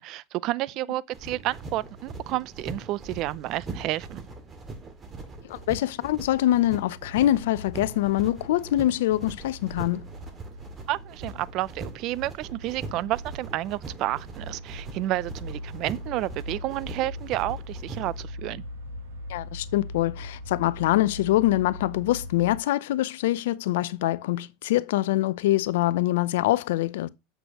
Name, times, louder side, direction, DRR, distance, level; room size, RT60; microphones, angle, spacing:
voice 1, 0.0-4.2 10.9-18.6, right 16 dB, 50° right, 0.4 m, -30 dB
sound 1, 1.1-18.2, right 3 dB, 25° right, 2.0 m, -41 dB
voice 2, 5.4-10.1 19.3-27.1, left 15 dB, 75° left, 0.5 m, -24 dB
sound 2, 6.4-22.6, left 1 dB, 75° right, 1.7 m, -41 dB
7.9 x 6.8 x 2.9 m
hypercardioid pair, 110°, 0 cm